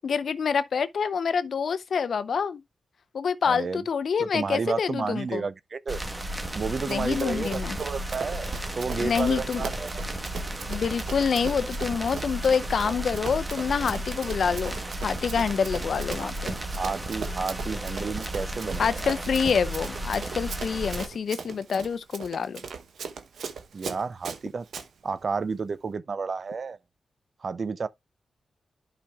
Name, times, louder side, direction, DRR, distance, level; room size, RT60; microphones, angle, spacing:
voice 1, 0.0-2.6 3.1-5.4 6.9-7.8 9.0-9.7 10.7-14.8 15.0-16.5 18.8-22.6, left 6 dB, 70° left, 0.6 m, -27 dB
voice 2, 3.4-3.8 4.2-6.0 6.5-10.1 16.2-16.3 16.8-19.2 23.7-24.7 25.0-26.8 27.4-27.9, right 5 dB, 55° right, 0.6 m, -31 dB
sound 1, 5.9-21.1, right 1 dB, 20° right, 1.3 m, -34 dB
Run, 6.9-24.9, right 6 dB, 80° right, 0.9 m, -40 dB
11.5 x 5.1 x 2.3 m
cardioid pair, 55°, 0 cm